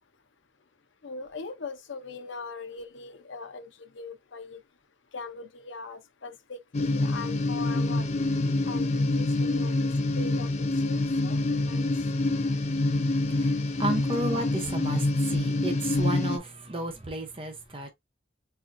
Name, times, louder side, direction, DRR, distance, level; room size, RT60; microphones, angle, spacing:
voice 1, 1.0-4.6 5.1-8.1 8.6-9.9 10.1-11.9, left 4 dB, 85° left, 0.7 m, -41 dB
sound 1, 6.7-16.4, left 2 dB, 35° left, 0.4 m, -26 dB
voice 2, 11.8-17.9, right 2 dB, 30° right, 0.8 m, -34 dB
4.3 x 2.7 x 2.6 m
head